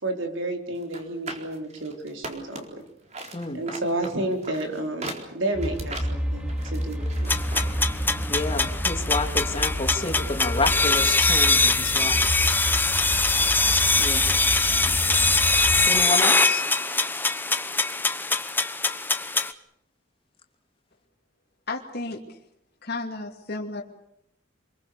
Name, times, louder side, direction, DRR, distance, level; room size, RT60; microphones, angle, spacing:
voice 1, 0.0-2.7 3.5-7.3 7.9-8.2, right 1 dB, 70° right, 4 dB, 4.6 m, -31 dB
book heavy noise, 0.8-2.8 3.1-7.7 8.0-8.1, right 2 dB, 35° right, 4.2 m, -38 dB
sound 1, 5.5-15.9, equal, 5° right, 2.7 m, -30 dB
sound 2, 7.3-19.5, left 3 dB, 10° left, 1.0 m, -23 dB
voice 2, 8.3-12.3 14.0-14.3 15.8-16.6, left 3 dB, 30° left, 4 dB, 3.0 m, -29 dB
voice 3, 21.7-22.2 22.8-23.8, left 3 dB, 55° left, -1 dB, 2.7 m, -32 dB
28.0 x 22.5 x 7.0 m, 0.75 s
head